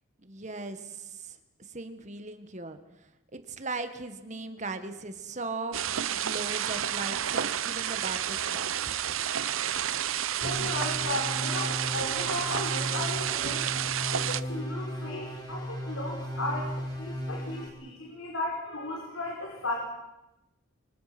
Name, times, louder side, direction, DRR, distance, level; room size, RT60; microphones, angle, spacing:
voice 1, 0.2-1.4 1.7-2.8 3.3-5.8 6.1-8.9, right 3 dB, 35° right, 8 dB, 1.7 m, -38 dB
sound 1, 5.7-14.4, right 10 dB, 75° right, 0.8 m, -30 dB
voice 2, 10.4-13.7 14.1-16.7 17.0-19.7, left 2 dB, 85° left, 0 dB, 5.2 m, -35 dB
sound 2, 10.4-17.7, equal, 20° left, 4.6 m, -36 dB
28.5 x 25.0 x 6.1 m, 0.95 s
head